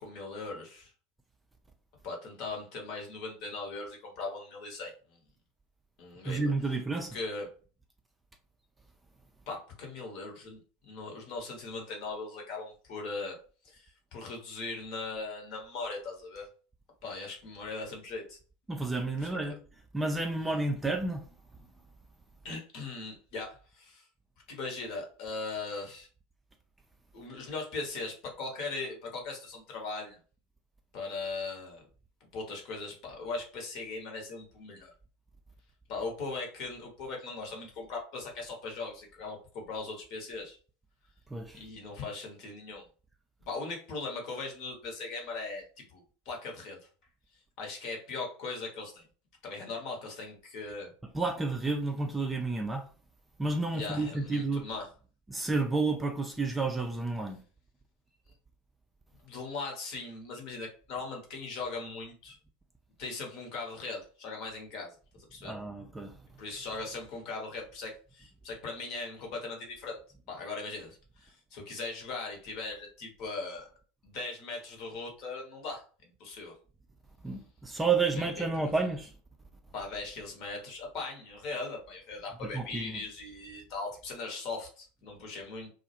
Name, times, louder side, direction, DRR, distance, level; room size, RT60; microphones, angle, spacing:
voice 1, 0.0-0.9 2.0-5.2 6.0-6.4 7.1-7.5 9.5-13.4 13.6-16.5 17.0-18.4 19.2-19.3 22.4-24.1 24.5-26.1 27.1-30.2 30.9-31.9 32.3-34.9 35.9-40.6 41.5-42.9 43.5-46.8 47.6-49.0 49.4-50.9 53.7-54.9 59.2-62.4 63.0-65.5 66.4-70.0 70.3-73.7 74.0-76.6 78.1-78.3 78.5-78.7 79.7-85.7, left 3 dB, 50° left, 0.9 m, -39 dB
voice 2, 6.3-7.2 18.7-19.6 19.9-21.2 41.3-41.6 51.1-52.9 53.4-54.7 55.3-57.4 65.4-66.2 77.2-79.1 82.4-83.0, right 3 dB, 10° right, 0.4 m, -31 dB
2.2 x 2.0 x 2.8 m
figure-of-eight pair, 80°, 0 cm